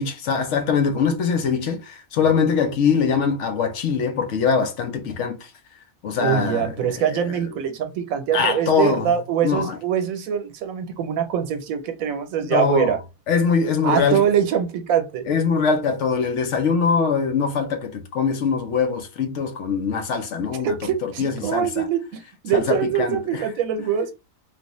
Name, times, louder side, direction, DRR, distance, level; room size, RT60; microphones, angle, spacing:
voice 1, 0.0-5.5 6.0-7.5 8.3-9.1 9.4-9.8 12.4-13.0 13.3-14.2 15.3-21.9 22.5-23.4, left 6 dB, 65° left, 1.0 m, -23 dB
voice 2, 6.2-13.0 13.8-15.3 20.5-24.1, right 8 dB, 80° right, 1.1 m, -23 dB
3.2 x 2.5 x 3.0 m
omnidirectional pair, 1.4 m